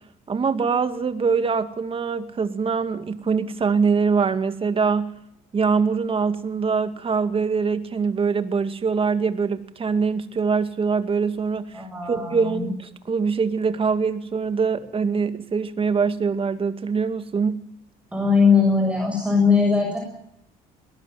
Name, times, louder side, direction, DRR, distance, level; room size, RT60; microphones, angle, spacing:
voice 1, 0.3-5.1 5.5-11.8 12.1-12.8 13.1-17.6, right 5 dB, 35° right, 10 dB, 2.2 m, -23 dB
voice 2, 11.7-12.7 18.1-20.0, left 5 dB, 5° right, 1 dB, 7.1 m, -20 dB
22.0 x 18.5 x 9.6 m, 0.77 s
cardioid pair, 110°, 17 cm